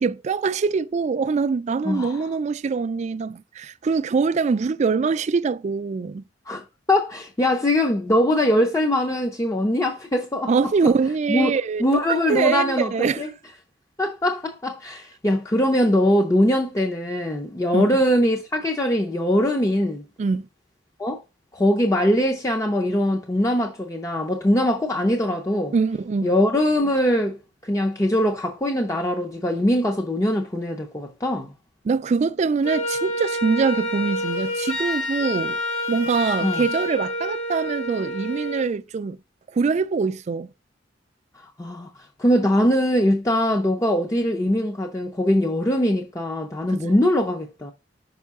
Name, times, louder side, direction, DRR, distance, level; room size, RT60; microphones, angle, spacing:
voice 1, 0.0-6.2 10.5-13.3 17.7-17.9 20.2-20.5 25.7-26.3 31.8-35.6 35.9-39.2 39.5-40.5 46.8-46.9, right 5 dB, 40° right, 0.3 m, -23 dB
voice 2, 1.8-2.2 6.5-10.7 11.3-11.5 11.8-13.3 14.0-20.0 21.0-21.2 21.5-25.7 26.2-27.4 27.6-31.5 36.4-36.6 41.6-41.9 42.2-47.7, left 1 dB, 20° left, 0.5 m, -22 dB
Wind instrument woodwind instrument, 32.6-38.7, left 1 dB, 85° left, 3.9 m, -28 dB
5.5 x 5.1 x 3.5 m
head